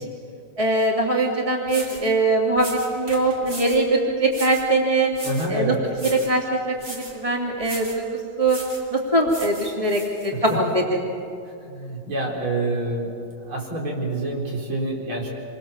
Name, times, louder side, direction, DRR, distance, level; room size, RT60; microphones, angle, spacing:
voice 1, 0.6-5.1 5.5-5.7 6.0-8.6 8.9-11.1, right 2 dB, 15° right, 0 dB, 2.9 m, -22 dB
sound 1, 1.2-1.3 1.7-2.1 2.6-3.9 4.3-4.7 5.1-5.6 5.9-6.4 6.8-7.2 7.6-8.0 8.5-8.9 9.3-10.6, right 2 dB, 35° right, 3.2 m, -38 dB
voice 2, 5.2-5.8 10.3-10.6 11.4-15.3, right 2 dB, 75° right, -1 dB, 5.1 m, -27 dB
27.5 x 23.5 x 7.3 m, 2.5 s
omnidirectional pair, 2.3 m